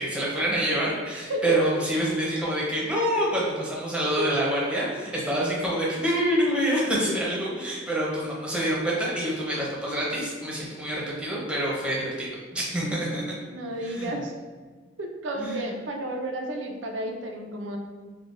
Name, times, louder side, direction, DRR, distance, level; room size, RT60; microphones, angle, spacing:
voice 1, 0.0-13.2 13.8-14.1 15.4-15.6, right 1 dB, 5° right, -5 dB, 0.6 m, -27 dB
voice 2, 1.3-1.7 4.2-4.3 4.9-5.0 12.8-14.3 15.0-17.8, right 1 dB, 90° right, 3 dB, 0.5 m, -32 dB
3.6 x 2.1 x 2.5 m, 1.4 s
head